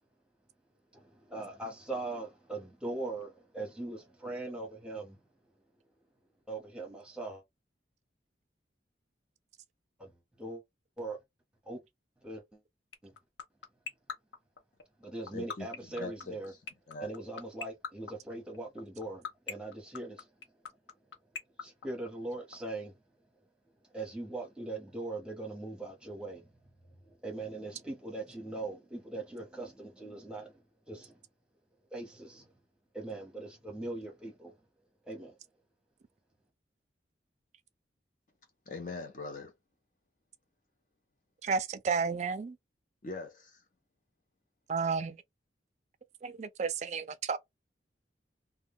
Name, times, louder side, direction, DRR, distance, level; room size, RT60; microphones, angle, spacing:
voice 1, 0.9-5.2 6.5-7.4 10.0-10.6 11.0-11.2 11.7-11.8 12.2-12.6 13.0-13.1 15.0-16.5 17.0-20.3 21.6-23.0 23.9-26.6 27.0-31.2 31.9-32.5 32.9-34.6 35.1-35.4, right 2 dB, 5° right, 0.8 m, -41 dB
sound 1, 12.9-22.5, left 6 dB, 85° left, 0.6 m, -38 dB
voice 2, 15.3-16.6 16.9-17.2 38.7-39.5 43.0-43.6, left 3 dB, 45° left, 0.6 m, -42 dB
voice 3, 41.4-42.6 44.7-45.2 46.2-47.4, right 5 dB, 40° right, 0.3 m, -32 dB
2.2 x 2.2 x 3.4 m
head